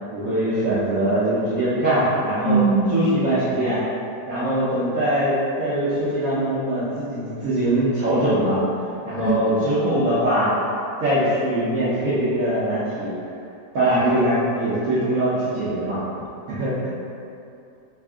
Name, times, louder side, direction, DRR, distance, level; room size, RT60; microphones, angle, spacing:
voice 1, 0.1-2.6 2.9-3.8 4.3-8.6 9.0-10.5 11.0-13.1 13.7-16.0 16.5-16.9, right 1 dB, 65° right, -12 dB, 1.2 m, -22 dB
voice 2, 2.4-3.0 9.2-10.0, right 3 dB, 85° left, -2 dB, 1.2 m, -22 dB
3.5 x 2.5 x 3.4 m, 2.6 s
omnidirectional pair, 1.7 m